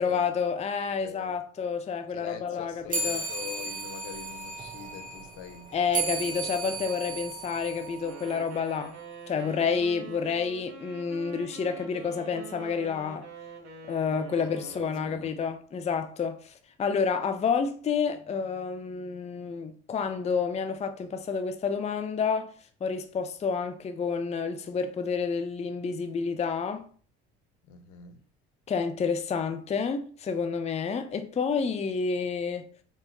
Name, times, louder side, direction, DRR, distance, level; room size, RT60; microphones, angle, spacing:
voice 1, 0.0-3.3 5.7-9.0 9.3-13.3 13.9-16.5 16.8-22.5 22.8-26.9 28.7-32.7, left 5 dB, 20° left, 0.5 m, -29 dB
voice 2, 1.0-1.3 2.1-6.8 14.4-15.4 27.6-28.2, left 9 dB, 60° left, 0.7 m, -44 dB
sound 1, 2.9-8.7, right 4 dB, 25° right, 1.2 m, -35 dB
Wind instrument woodwind instrument, 8.0-15.2, right 5 dB, 50° right, 1.7 m, -45 dB
4.1 x 3.9 x 3.0 m
hypercardioid pair, 60°, 33 cm